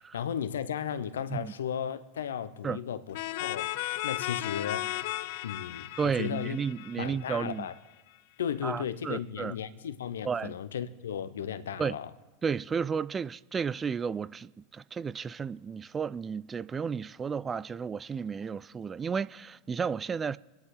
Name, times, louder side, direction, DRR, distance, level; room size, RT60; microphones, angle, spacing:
voice 1, 0.1-3.7 4.0-4.9 5.4-6.6 7.0-7.7 8.4-12.1, left 8 dB, 80° left, 0.8 m, -35 dB
sound 1, 3.1-7.7, left 17 dB, 60° left, 0.4 m, -35 dB
voice 2, 6.0-7.7 8.6-9.5 10.2-10.5 11.8-12.0 12.4-20.4, right 6 dB, 25° right, 0.3 m, -33 dB
25.5 x 10.5 x 3.9 m
hypercardioid pair, 85°, 0 cm